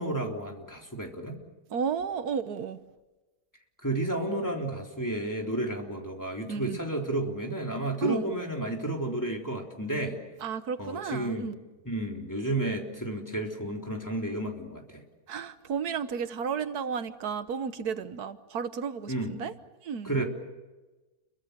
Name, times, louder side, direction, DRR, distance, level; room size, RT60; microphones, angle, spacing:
voice 1, 0.0-1.4 3.8-10.2 10.8-11.5 11.9-15.0 19.1-19.4 20.0-20.2, right 1 dB, 10° left, 1 dB, 3.6 m, -32 dB
voice 2, 1.7-2.8 6.5-6.8 8.0-8.3 10.4-11.6 15.3-19.5 19.8-20.2, right 6 dB, 90° right, 11 dB, 1.6 m, -33 dB
29.5 x 23.5 x 6.8 m, 1.2 s
omnidirectional pair, 1.6 m